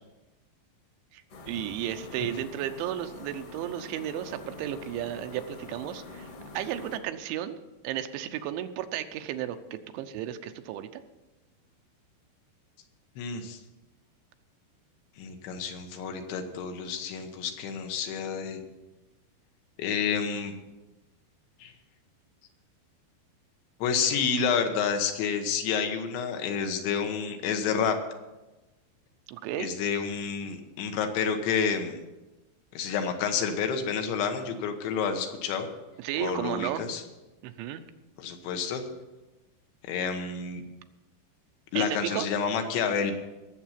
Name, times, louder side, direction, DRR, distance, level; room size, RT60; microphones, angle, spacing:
voice 1, 1.1-7.6 7.8-11.0 29.3-29.7 36.0-36.9 37.4-37.8 41.7-42.3, right 11 dB, 85° right, 9 dB, 3.1 m, -34 dB
sound 1, 1.3-7.0, left 3 dB, 50° left, 1.9 m, -45 dB
voice 2, 13.2-13.6 15.2-18.6 19.8-20.5 21.6-21.7 23.8-28.0 29.6-32.0 32.7-35.7 36.2-37.0 38.2-38.8 39.9-40.6 41.7-43.1, left 6 dB, 80° left, 5 dB, 3.5 m, -29 dB
18.5 x 7.6 x 5.8 m, 1.1 s
omnidirectional pair, 5.3 m